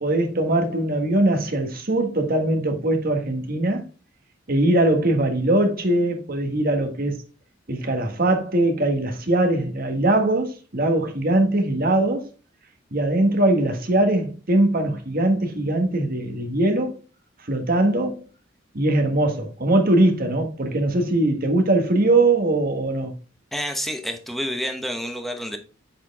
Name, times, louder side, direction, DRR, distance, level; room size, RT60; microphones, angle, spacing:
voice 1, 0.0-3.8 4.5-7.2 7.7-12.3 12.9-17.0 17.5-18.2 18.7-23.1, right 1 dB, 50° right, 1.5 m, -21 dB
voice 2, 23.5-25.6, equal, ahead, 1.0 m, -29 dB
7.6 x 4.5 x 3.5 m
head